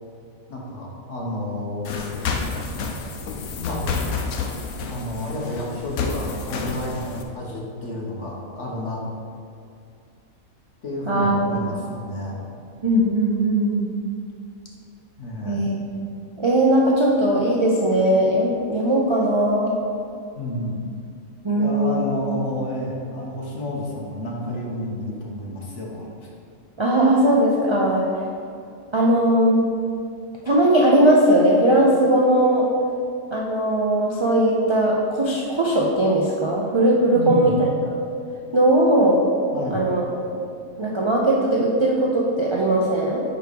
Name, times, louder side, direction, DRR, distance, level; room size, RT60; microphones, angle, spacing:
voice 1, 0.5-2.2 3.6-4.1 4.8-9.0 10.8-12.4 15.2-15.6 20.3-20.8 21.5-26.3 37.1-37.5 39.5-39.9, left 1 dB, 60° left, -3 dB, 1.4 m, -30 dB
sound 1, 1.8-7.2, left 5 dB, 80° left, 1.1 m, -29 dB
voice 2, 12.8-13.9 15.4-15.8 16.4-19.7 21.4-22.0 26.8-28.1 28.9-29.7 30.4-32.7 33.3-37.7 38.5-39.2 39.7-40.0 40.8-43.2, right 1 dB, 50° right, -4 dB, 0.3 m, -19 dB
4.8 x 4.7 x 5.1 m, 2.4 s
omnidirectional pair, 1.5 m